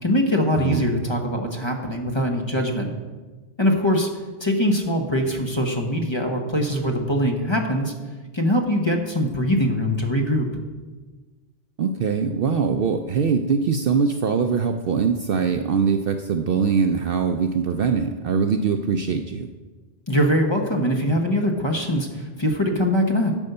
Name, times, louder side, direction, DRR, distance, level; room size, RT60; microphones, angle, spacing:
voice 1, 0.0-2.9 3.6-4.1 4.4-7.9 8.3-10.5 20.1-23.3, equal, 25° left, 2 dB, 1.0 m, -22 dB
voice 2, 0.5-0.9 11.8-19.5, right 6 dB, 60° right, 6 dB, 0.6 m, -22 dB
11.0 x 5.3 x 6.7 m, 1.3 s
omnidirectional pair, 1.2 m